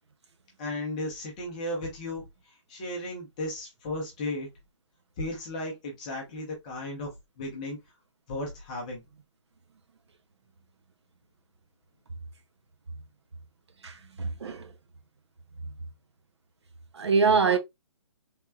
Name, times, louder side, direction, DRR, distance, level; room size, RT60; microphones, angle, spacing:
voice 1, 0.6-2.2 2.7-4.5 5.2-7.1 7.4-7.8 8.3-9.0, left 1 dB, 15° left, 0.7 m, -35 dB
voice 2, 13.8-14.7 15.6-15.7 16.9-17.6, right 5 dB, 60° right, 0.8 m, -25 dB
3.4 x 2.9 x 2.3 m
hypercardioid pair, 175°, 16 cm